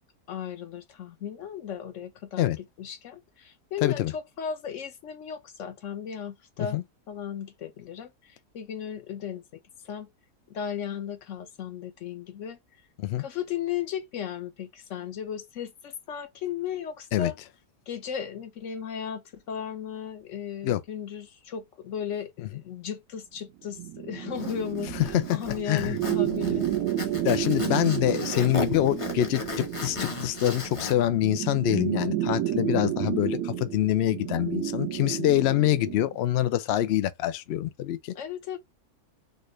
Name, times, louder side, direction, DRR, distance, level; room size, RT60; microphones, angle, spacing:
voice 1, 0.3-6.8 7.1-10.1 10.5-12.6 13.2-17.4 17.9-26.7 35.1-35.4 38.1-38.6, left 8 dB, 60° left, 1.0 m, -36 dB
voice 2, 3.8-4.1 6.6-6.8 13.0-13.2 17.1-17.3 20.6-20.8 25.1-25.2 25.7-26.0 27.2-38.1, left 13 dB, 90° left, 0.5 m, -25 dB
sound 1, 23.7-36.2, right 12 dB, 85° right, 1.2 m, -31 dB
Zipper (clothing), 24.3-30.9, left 3 dB, 30° left, 0.6 m, -36 dB
4.1 x 2.6 x 3.1 m
omnidirectional pair, 1.7 m